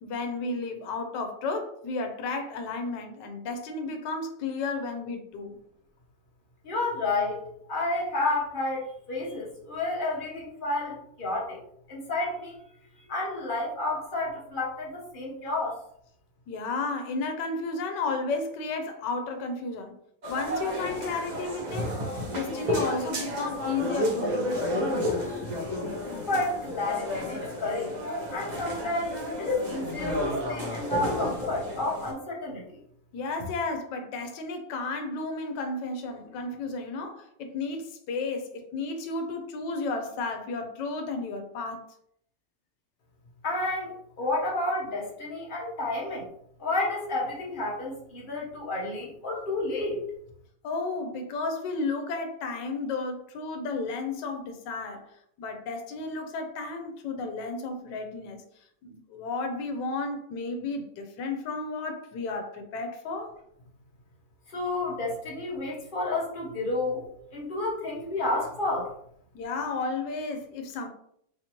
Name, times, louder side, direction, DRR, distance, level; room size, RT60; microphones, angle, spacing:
voice 1, 0.0-5.6 16.5-20.0 20.3-22.0 22.3-24.5 33.1-41.9 50.6-55.0 55.4-58.4 58.8-63.3 69.3-70.9, left 3 dB, 80° left, 1.3 m, -33 dB
voice 2, 6.6-11.6 11.9-12.6 13.1-15.8 26.1-27.9 28.3-32.8 43.4-46.2 46.6-50.0 64.5-67.1 67.3-68.9, left 2 dB, 40° left, 0.9 m, -30 dB
sound 1, 20.2-32.1, left 1 dB, 45° right, 0.5 m, -31 dB
4.0 x 2.9 x 2.9 m
omnidirectional pair, 1.9 m